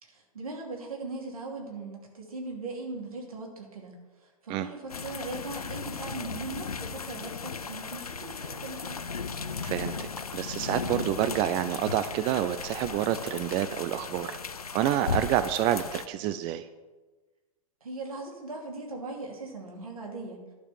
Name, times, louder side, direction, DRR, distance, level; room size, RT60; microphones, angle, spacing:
voice 1, 0.0-4.0 4.4-9.0 17.8-20.4, right 3 dB, 75° right, 0 dB, 2.8 m, -39 dB
sound 1, 4.9-16.1, left 5 dB, 85° left, 0.6 m, -36 dB
voice 2, 9.6-14.4 14.7-16.7, right 12 dB, 30° right, 12 dB, 0.4 m, -28 dB
11.0 x 5.0 x 7.3 m, 1.2 s
figure-of-eight pair, 105°, 19 cm